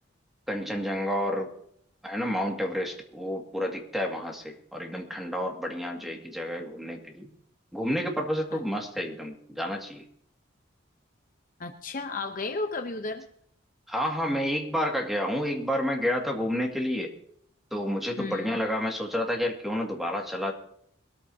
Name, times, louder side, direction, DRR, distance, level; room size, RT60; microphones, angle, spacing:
voice 1, 0.5-1.5 2.0-7.3 7.7-10.0 13.9-17.1 17.7-20.5, equal, ahead, 1 dB, 2.1 m, -30 dB
voice 2, 11.6-13.3 18.2-18.6, left 3 dB, 45° left, 6 dB, 0.8 m, -33 dB
22.0 x 13.5 x 2.8 m, 0.67 s
head